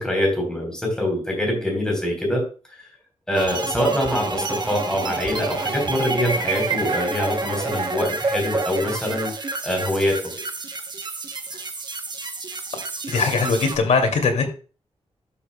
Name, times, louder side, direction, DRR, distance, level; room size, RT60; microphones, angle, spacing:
voice 1, 0.0-2.5 3.3-9.3 9.6-10.2, left 1 dB, 5° left, 0 dB, 3.8 m, -24 dB
sound 1, 3.3-13.8, right 3 dB, 40° right, 0.9 m, -29 dB
voice 2, 13.1-14.5, left 4 dB, 90° left, 4 dB, 2.4 m, -20 dB
12.5 x 7.0 x 2.2 m, 0.36 s
wide cardioid pair, 180°, 12 cm